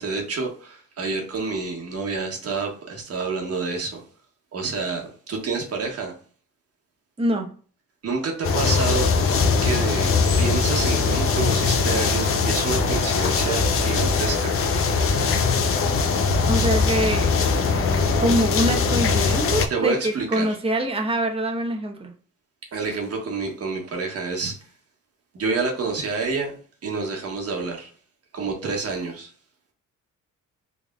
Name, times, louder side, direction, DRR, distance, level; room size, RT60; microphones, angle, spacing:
voice 1, 0.0-4.0 4.5-6.1 8.0-9.1 9.6-15.1 19.7-20.6 22.7-24.6 25.3-26.6 26.8-27.9 28.3-29.3, right 4 dB, 50° right, 1.4 m, -28 dB
voice 2, 7.2-7.5 16.5-17.8 18.2-22.1, right 1 dB, 20° right, 0.9 m, -24 dB
sound 1, 8.4-19.7, left 5 dB, 45° left, 0.6 m, -21 dB
3.7 x 3.4 x 2.3 m
cardioid pair, 90°, 30 cm